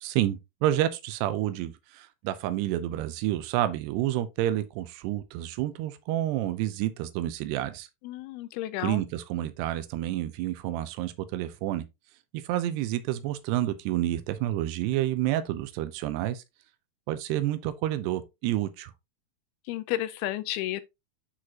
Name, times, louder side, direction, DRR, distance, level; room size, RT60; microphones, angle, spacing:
voice 1, 0.0-7.9 8.8-11.9 12.3-16.4 17.1-18.9, right 13 dB, 90° right, 2.9 m, -29 dB
voice 2, 8.0-9.0 19.7-20.8, left 14 dB, 80° left, 2.3 m, -32 dB
10.0 x 4.9 x 2.8 m
omnidirectional pair, 4.7 m